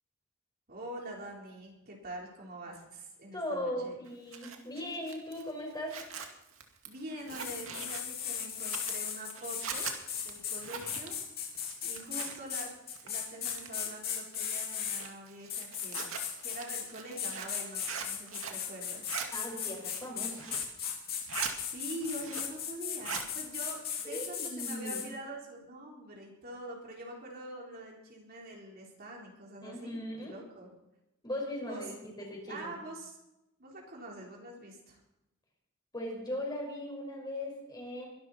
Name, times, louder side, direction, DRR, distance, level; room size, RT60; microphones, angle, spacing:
voice 1, 0.7-4.0 6.8-9.9 10.2-11.2 11.8-12.7 13.0-16.1 16.4-19.1 21.6-30.7 31.6-31.8 32.5-33.2 33.6-35.0, right 1 dB, 50° right, -2 dB, 4.3 m, -45 dB
voice 2, 3.3-6.0 19.3-20.5 24.0-25.0 29.6-30.4 31.2-32.8 35.9-38.1, left 1 dB, 20° left, -1 dB, 5.7 m, -38 dB
Zipper (clothing), 4.1-12.6 12.9-13.9 14.3-18.6 18.9-19.3 19.7-20.7 21.1-21.5 21.9-22.6 22.9-23.3, right 6 dB, 80° right, 2.3 m, -42 dB
sound 1, 7.3-15.0 15.5-16.9 17.2-25.1, left 8 dB, 50° left, 3.3 m, -37 dB
22.5 x 12.5 x 4.4 m, 0.89 s
head